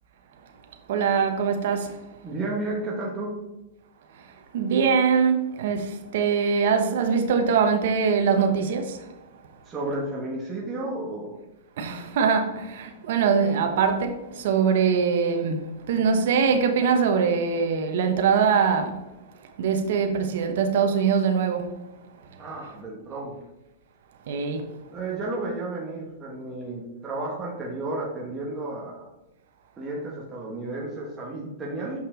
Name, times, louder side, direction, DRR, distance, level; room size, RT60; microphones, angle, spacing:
voice 1, 0.9-1.9 4.5-9.0 11.8-19.0 19.6-21.7 24.3-24.7, right 6 dB, 65° right, 1.1 m, -23 dB
voice 2, 2.2-3.4 9.7-11.3 22.4-23.3 24.9-29.1 29.8-32.0, right 2 dB, 20° right, 1.5 m, -32 dB
6.8 x 5.5 x 3.8 m
hypercardioid pair, 125°, 0 cm